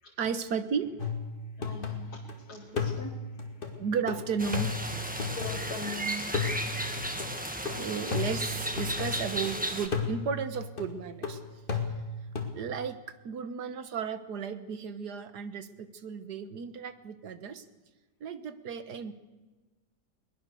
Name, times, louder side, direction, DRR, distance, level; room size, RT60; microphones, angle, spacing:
voice 1, 0.2-1.0 3.7-4.7 7.7-11.4 12.5-17.7 18.2-19.1, right 6 dB, 80° right, 11 dB, 1.8 m, -34 dB
sound 1, 1.0-2.3 2.8-5.9 6.3-9.5 9.9-12.6, left 5 dB, 30° left, 2.4 m, -34 dB
voice 2, 1.6-2.2 2.5-3.1 5.4-6.2, left 1 dB, 70° left, -2 dB, 2.8 m, -40 dB
sound 2, 4.4-9.9, right 1 dB, 5° right, 1.6 m, -35 dB
21.5 x 20.0 x 6.9 m, 1.3 s
omnidirectional pair, 1.7 m